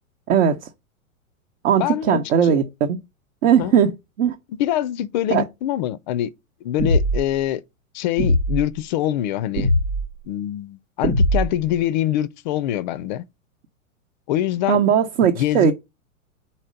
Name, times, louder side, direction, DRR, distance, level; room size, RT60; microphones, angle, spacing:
voice 1, 0.3-0.6 1.6-2.6 2.9-3.0 3.4-3.9 4.2-4.4 5.3-5.4 14.7-15.7, right 8 dB, 55° right, 0.9 m, -18 dB
voice 2, 1.8-2.6 3.6-3.7 4.6-6.3 6.6-7.6 7.9-9.7 10.3-13.2 14.3-14.8 15.3-15.7, left 12 dB, 35° left, 0.4 m, -24 dB
sound 1, 6.8-7.4 8.2-8.6 9.6-10.1 11.0-11.7, equal, 90° right, 1.2 m, -20 dB
4.4 x 4.3 x 5.1 m
hypercardioid pair, 110°, 42 cm